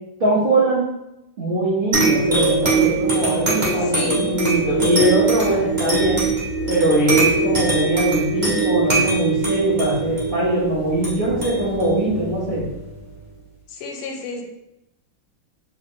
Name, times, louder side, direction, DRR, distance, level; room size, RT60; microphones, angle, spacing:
voice 1, 0.2-0.9 1.4-6.2 6.7-12.6, right 1 dB, 75° right, -8 dB, 0.5 m, -21 dB
sound 1, 1.9-13.0, right 3 dB, 35° right, 0.7 m, -22 dB
voice 2, 3.8-4.3 13.7-14.5, left 3 dB, 85° left, 2 dB, 1.5 m, -31 dB
3.4 x 2.5 x 3.6 m, 0.92 s
omnidirectional pair, 2.3 m